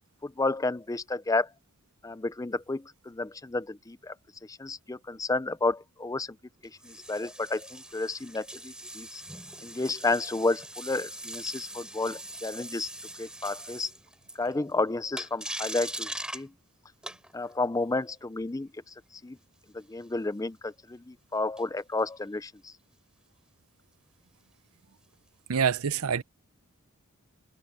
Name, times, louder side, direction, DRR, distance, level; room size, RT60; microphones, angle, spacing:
voice 1, 0.2-1.5 2.0-4.1 4.5-6.4 6.8-9.2 9.6-12.9 13.2-13.9 14.4-16.5 17.3-18.7 19.2-19.4 19.7-22.7, left 3 dB, 15° left, 0.4 m, -31 dB
sound 1, 6.6-14.7 15.2-16.5 17.0-17.5 21.6-22.0 25.6-25.7, right 1 dB, 5° right, 4.9 m, -41 dB
voice 2, 25.5-26.2, right 7 dB, 75° right, 0.7 m, -26 dB
head